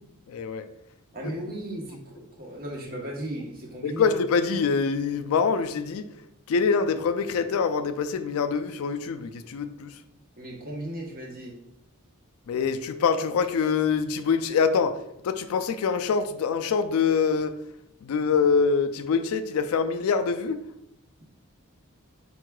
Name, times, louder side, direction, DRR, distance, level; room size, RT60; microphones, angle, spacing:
voice 1, 0.3-0.7 1.2-1.3 3.8-6.1 6.5-10.0 12.5-17.6 18.0-20.6, left 5 dB, 70° left, 10 dB, 0.3 m, -25 dB
voice 2, 1.1-4.1 10.4-11.5, right 1 dB, 40° right, -1 dB, 1.0 m, -36 dB
4.6 x 4.6 x 2.3 m, 0.82 s
head